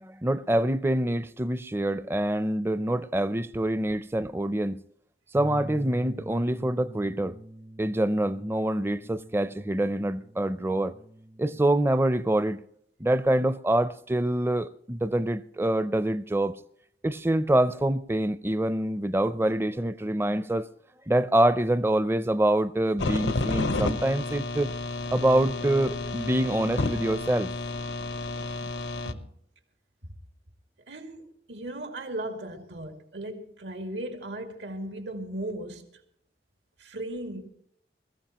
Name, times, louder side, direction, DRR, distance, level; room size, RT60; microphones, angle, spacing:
voice 1, 0.0-4.8 5.3-7.4 7.8-10.9 11.4-12.6 13.0-16.5 17.0-20.7 21.1-24.7 25.1-27.5, right 1 dB, 15° right, 0.5 m, -25 dB
Bass guitar, 5.4-11.6, right 1 dB, 70° right, 3.7 m, -45 dB
sound 1, 23.0-29.1, left 2 dB, 85° left, 0.9 m, -31 dB
voice 2, 30.9-36.0 36.8-37.5, right 1 dB, 85° right, 2.2 m, -37 dB
21.0 x 15.0 x 3.0 m
head